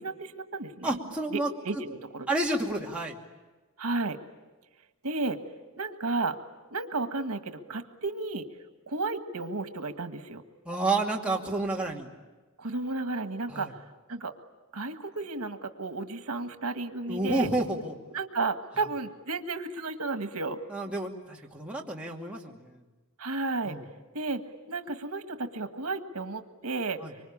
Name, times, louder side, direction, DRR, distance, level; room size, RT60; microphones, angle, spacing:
voice 1, 0.0-1.0 1.3-2.3 3.8-4.2 5.0-5.4 5.8-6.4 6.7-8.5 8.9-10.4 12.6-13.8 14.1-14.3 14.7-17.5 18.1-20.6 23.2-23.8 24.1-24.4 24.7-27.0, right 3 dB, 85° right, 8 dB, 1.7 m, -33 dB
voice 2, 0.8-1.8 2.3-3.2 10.6-12.1 13.5-13.7 17.1-18.0 20.7-22.8 23.6-23.8 27.0-27.1, right 2 dB, 5° right, -2 dB, 2.5 m, -30 dB
25.5 x 24.5 x 8.7 m, 1.2 s
head